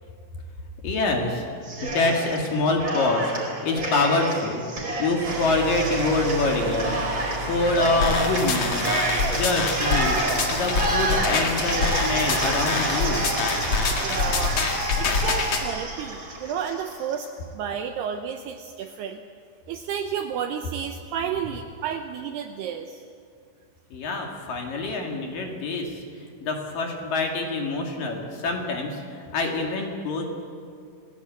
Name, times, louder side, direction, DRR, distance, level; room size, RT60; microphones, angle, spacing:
voice 1, 0.8-1.4 1.8-4.6 5.0-10.2 10.5-13.2 23.9-26.0 26.4-29.0 29.3-30.2, left 2 dB, 50° left, 2 dB, 3.4 m, -25 dB
Cheering, 1.6-2.5 2.8-17.2, right 1 dB, 25° right, 4.7 m, -29 dB
sound 1, 5.2-14.6, right 3 dB, 60° right, 4.8 m, -32 dB
sound 2, 8.0-15.6, left 4 dB, 70° left, 1.2 m, -26 dB
voice 2, 14.0-14.6 15.0-19.2 19.7-23.0, right 8 dB, 75° right, 6 dB, 2.5 m, -31 dB
29.0 x 19.0 x 8.5 m, 2.3 s
omnidirectional pair, 5.6 m